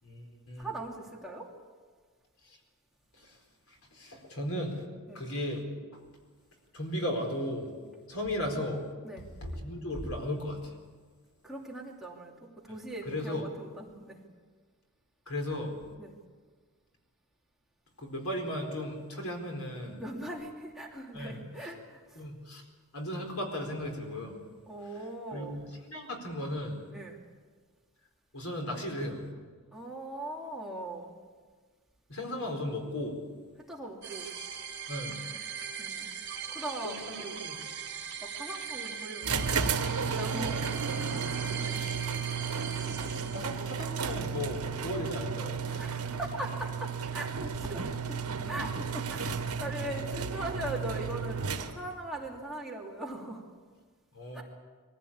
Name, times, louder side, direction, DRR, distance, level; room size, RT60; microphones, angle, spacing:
voice 1, 0.0-0.7 2.4-2.6 3.1-3.4 3.7-4.9 5.1-5.6 5.9-6.0 6.7-7.7 8.1-8.8 9.2-10.7 12.7-12.8 13.1-13.4 15.3-15.7 18.0-20.0 21.1-21.7 22.2-22.6 22.9-24.4 25.3-26.8 28.3-29.2 32.1-33.2 34.9-35.1 36.8-37.6 40.7-41.3 43.0-46.1 54.1-54.4, left 1 dB, 70° left, 2 dB, 4.3 m, -36 dB
voice 2, 0.6-1.5 5.1-5.2 9.0-9.3 9.5-9.6 11.4-14.2 16.0-16.1 20.0-22.2 24.7-25.6 26.9-27.2 29.7-31.1 33.7-34.3 35.8-36.1 36.5-37.4 38.2-39.6 40.1-40.9 41.6-41.9 45.8-48.2 48.5-53.4 54.3-54.4, right 1 dB, ahead, -3 dB, 2.7 m, -40 dB
sound 1, 34.0-43.9, right 7 dB, 55° right, 2.6 m, -40 dB
sound 2, 39.2-52.0, right 5 dB, 80° right, 1.3 m, -33 dB
23.0 x 15.5 x 8.7 m, 1.5 s
head